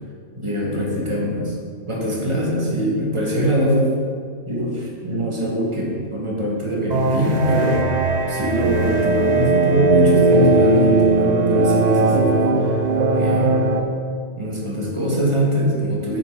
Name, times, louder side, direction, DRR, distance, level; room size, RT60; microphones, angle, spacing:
voice 1, 0.4-1.6 1.8-3.9 4.4-7.8 8.3-12.8 13.1-13.6 14.4-16.2, equal, 25° right, -3 dB, 1.4 m, -23 dB
sound 1, 6.9-13.8, right 2 dB, 50° right, 0.5 m, -18 dB
8.6 x 6.6 x 3.3 m, 2.1 s
omnidirectional pair, 1.3 m